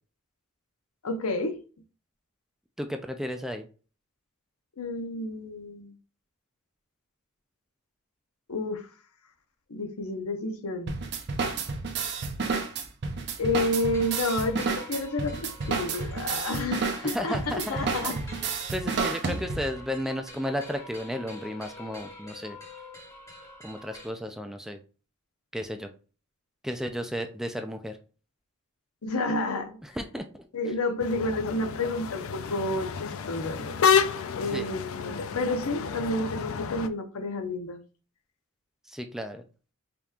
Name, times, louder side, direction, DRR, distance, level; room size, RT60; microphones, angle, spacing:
voice 1, 1.0-1.6 4.8-5.9 8.5-8.9 9.7-10.9 13.4-18.2 29.0-29.8 30.5-33.8 34.3-37.8, left 2 dB, 90° left, 0.8 m, -30 dB
voice 2, 2.8-3.7 17.0-18.1 18.7-22.6 23.6-24.8 25.5-25.9 26.6-28.0 29.8-30.4 34.5-34.7 38.9-39.4, equal, ahead, 0.3 m, -33 dB
sound 1, 10.9-19.8, right 4 dB, 55° right, 0.6 m, -31 dB
sound 2, 13.7-24.1, left 2 dB, 15° left, 1.4 m, -46 dB
sound 3, 31.0-36.9, left 7 dB, 70° left, 0.4 m, -29 dB
5.1 x 2.9 x 2.4 m
head